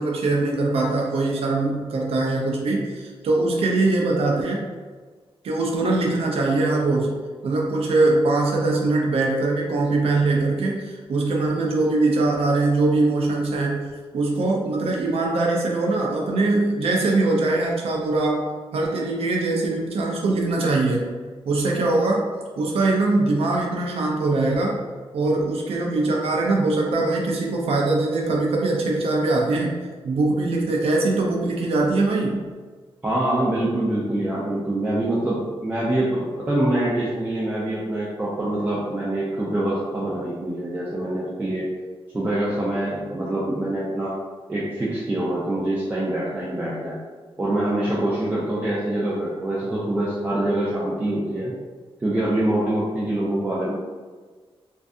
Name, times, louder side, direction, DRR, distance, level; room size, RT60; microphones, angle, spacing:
voice 1, 0.0-4.6 5.4-7.2 7.4-13.9 14.1-21.2 21.5-22.2 22.6-24.8 25.1-29.8 30.0-32.4, right 2 dB, 80° right, -1 dB, 0.4 m, -22 dB
voice 2, 33.0-41.7 42.1-44.1 44.5-47.0 47.4-51.5 52.0-53.8, right 1 dB, 20° right, -7 dB, 0.3 m, -25 dB
2.6 x 2.3 x 2.4 m, 1.4 s
wide cardioid pair, 175°, 10 cm